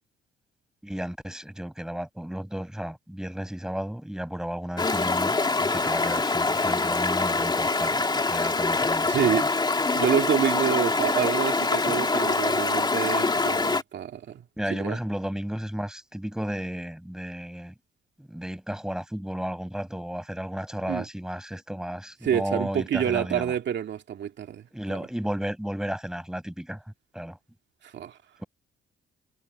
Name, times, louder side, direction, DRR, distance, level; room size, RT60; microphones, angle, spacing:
voice 1, 0.8-9.4 14.6-17.7 18.2-23.5 24.7-26.8 27.1-27.4 28.4-28.5, equal, 5° right, 5.2 m, -33 dB
Stream, 4.8-13.8, left 3 dB, 20° left, 2.9 m, -24 dB
voice 2, 9.1-9.5 9.9-14.4 14.7-15.0 20.9-21.0 22.2-24.6 27.8-28.2, right 9 dB, 65° right, 2.4 m, -27 dB
cardioid pair, 90°, 20 cm